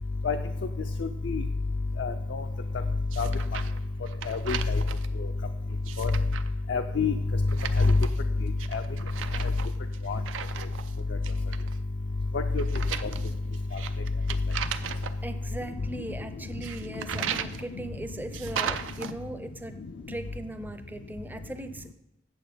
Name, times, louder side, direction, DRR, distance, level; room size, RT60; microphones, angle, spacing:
voice 1, 2.0-2.4 3.2-3.3 4.3-4.8 6.0-6.1 6.7-7.1 8.7-8.8 10.1-10.2 12.3-12.6, left 4 dB, 65° left, 5 dB, 0.5 m, -27 dB
sound 1, 3.1-3.8 4.1-5.1 5.7-6.5 7.5-8.2 8.6-10.9 11.2-11.8 12.6-15.1 16.6-17.6 18.3-19.1, right 8 dB, 80° right, 0.5 m, -36 dB
voice 2, 15.2-19.8 20.1-21.9, right 1 dB, 10° right, 9 dB, 0.6 m, -39 dB
8.8 x 7.0 x 5.1 m, 0.90 s
head